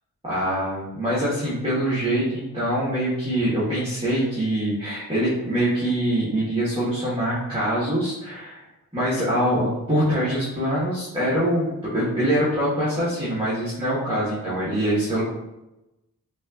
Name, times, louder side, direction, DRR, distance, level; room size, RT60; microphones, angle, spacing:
voice 1, 0.2-8.6 8.9-15.2, right 1 dB, 15° right, -11 dB, 1.4 m, -24 dB
6.0 x 2.5 x 2.4 m, 0.96 s
wide cardioid pair, 110°, 36 cm